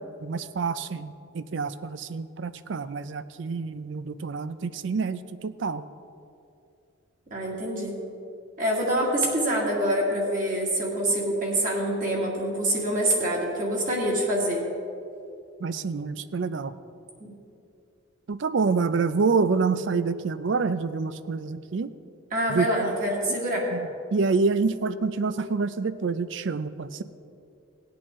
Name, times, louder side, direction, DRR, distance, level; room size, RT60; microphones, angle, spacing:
voice 1, 0.2-5.8 15.6-16.7 18.3-21.9 22.5-22.7 23.7-27.0, right 4 dB, 60° right, 14 dB, 0.4 m, -27 dB
voice 2, 7.3-8.0 8.6-14.6 22.3-23.7, right 1 dB, 40° right, -3 dB, 2.1 m, -25 dB
18.0 x 8.6 x 3.7 m, 2.6 s
head